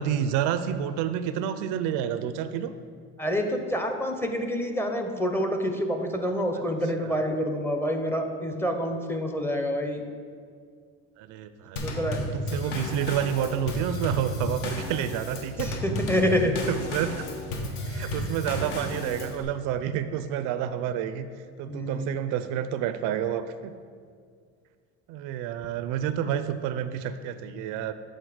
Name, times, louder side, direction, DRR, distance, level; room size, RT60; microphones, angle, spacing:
voice 1, 0.0-2.7 6.5-6.6 7.0-7.4 11.2-15.7 16.7-17.2 17.9-21.3 21.6-23.8 25.1-27.9, right 9 dB, 85° right, 12 dB, 0.5 m, -29 dB
voice 2, 3.2-10.1 11.8-12.3 15.6-16.5 17.9-18.3 21.7-22.1, equal, 10° left, 4 dB, 0.6 m, -27 dB
Drum kit / Snare drum / Bass drum, 11.8-19.4, left 1 dB, 70° left, 1.0 m, -33 dB
7.9 x 3.8 x 4.9 m, 2.1 s
cardioid pair, 130°, 30 cm